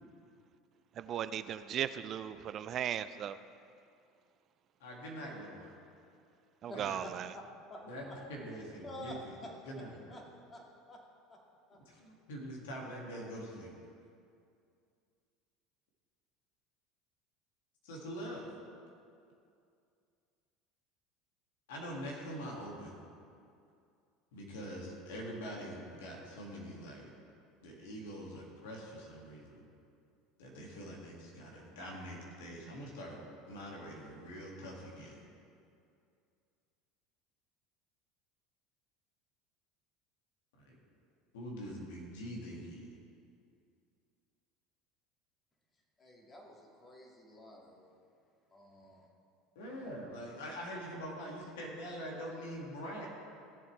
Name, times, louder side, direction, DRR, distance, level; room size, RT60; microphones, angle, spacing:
voice 1, 1.0-3.4 6.6-7.3, right 10 dB, 45° right, 13 dB, 0.3 m, -37 dB
voice 2, 4.8-5.7 6.7-7.0 7.8-9.4 9.6-10.2 11.9-13.7 17.8-18.5 21.7-23.0 24.3-27.1 27.6-29.6 30.4-35.2 40.6-40.8 41.3-43.0 49.6-53.1, equal, 75° left, -1 dB, 2.2 m, -44 dB
voice 3, 6.7-8.1 8.8-9.5 10.1-10.2 10.5-10.6 10.9-11.0 11.3-11.4 11.7-11.8 46.0-47.9 48.5-49.1, left 1 dB, 25° left, -1 dB, 2.3 m, -49 dB
16.5 x 7.4 x 3.4 m, 2.4 s
hypercardioid pair, 80°, 0 cm